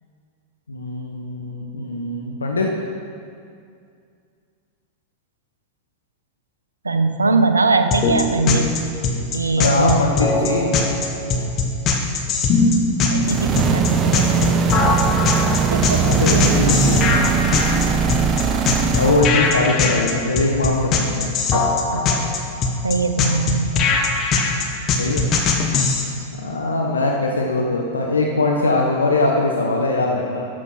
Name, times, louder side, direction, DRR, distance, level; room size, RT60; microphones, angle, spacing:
voice 1, 0.7-2.7 9.6-10.7 15.9-17.2 19.0-21.4 25.0-25.3 26.4-30.4, left 2 dB, 75° left, 0 dB, 0.8 m, -21 dB
voice 2, 6.8-8.8 9.3-10.0 13.1-14.6 15.7-16.0 18.9-19.0 21.5-21.6 21.9-22.1 22.8-23.9 26.6-26.8, right 3 dB, 80° right, 8 dB, 0.6 m, -21 dB
sound 1, 7.9-26.0, left 4 dB, 30° left, 1.1 m, -20 dB
sound 2, 13.2-19.3, right 6 dB, 30° right, 0.6 m, -20 dB
12.5 x 6.4 x 4.4 m, 2.3 s
figure-of-eight pair, 90°, 0 cm